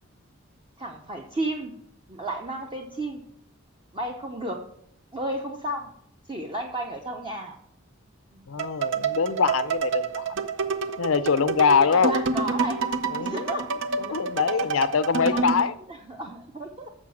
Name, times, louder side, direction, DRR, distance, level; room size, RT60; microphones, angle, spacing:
voice 1, 0.8-1.7 2.1-3.2 3.9-4.6 5.1-5.9 6.3-7.6 8.3-8.4 11.9-12.8 13.2-13.6 15.3-15.4 16.1-16.9, right 1 dB, 25° right, 2 dB, 0.7 m, -32 dB
voice 2, 8.5-10.4 11.0-12.2 13.1-13.6 14.0-15.7, left 5 dB, 90° left, 13 dB, 0.6 m, -23 dB
sound 1, 8.6-15.7, right 4 dB, 65° right, 0.6 m, -28 dB
7.3 x 6.4 x 6.3 m, 0.73 s
head